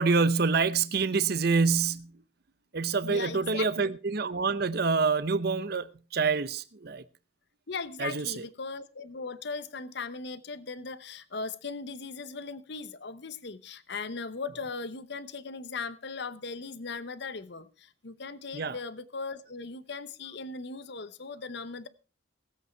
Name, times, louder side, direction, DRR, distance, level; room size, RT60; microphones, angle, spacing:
voice 1, 0.0-2.1 2.7-7.0 8.0-8.3 18.5-18.8, right 4 dB, 50° right, 0.7 m, -26 dB
voice 2, 3.0-3.9 7.7-21.9, left 4 dB, 60° left, 0.9 m, -38 dB
18.0 x 8.3 x 4.5 m
head